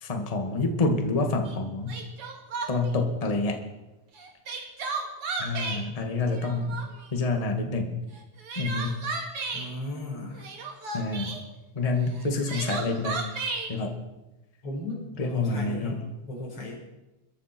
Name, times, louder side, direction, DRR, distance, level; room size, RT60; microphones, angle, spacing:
voice 1, 0.0-2.0 2.7-3.6 5.4-6.8 7.1-8.0 8.5-9.0 10.9-11.4 11.7-13.2 13.7-14.0 15.2-15.9, left 3 dB, 15° left, 4 dB, 1.3 m, -27 dB
Crying sobbing, 1.5-1.6 1.9-2.9 4.2-5.8 6.3-7.1 8.2-9.7 10.4-11.4 12.2-13.7, right 4 dB, 50° right, 2.9 m, -33 dB
voice 2, 9.5-10.5 14.6-16.8, left 1 dB, 50° left, -1 dB, 5.9 m, -36 dB
23.5 x 13.5 x 4.5 m, 1.0 s
omnidirectional pair, 3.5 m